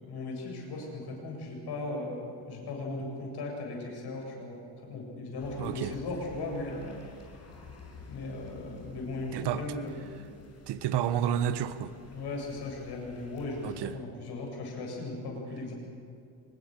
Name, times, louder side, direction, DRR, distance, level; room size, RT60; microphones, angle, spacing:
voice 1, 0.0-4.6 4.8-7.0 8.1-10.3 12.1-15.7, left 2 dB, 60° left, 7.9 m, -37 dB
sound 1, 5.4-13.9, left 4 dB, 35° left, 5.8 m, -51 dB
voice 2, 5.6-6.0 9.3-9.6 10.7-11.9 13.6-13.9, right 10 dB, 60° right, 1.2 m, -30 dB
24.5 x 20.5 x 6.7 m
supercardioid pair, 85°, 45 cm